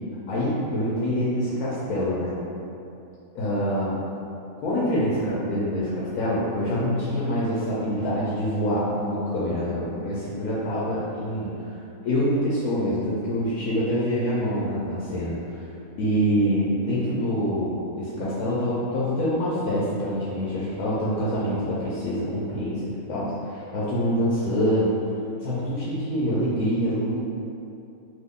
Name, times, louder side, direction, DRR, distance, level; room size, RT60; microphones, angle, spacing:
voice 1, 0.3-2.4 3.3-4.0 4.6-11.8 12.0-15.6 16.0-24.9 25.4-27.2, equal, 85° left, -8 dB, 1.1 m, -25 dB
2.8 x 2.5 x 3.5 m, 2.7 s
omnidirectional pair, 1.6 m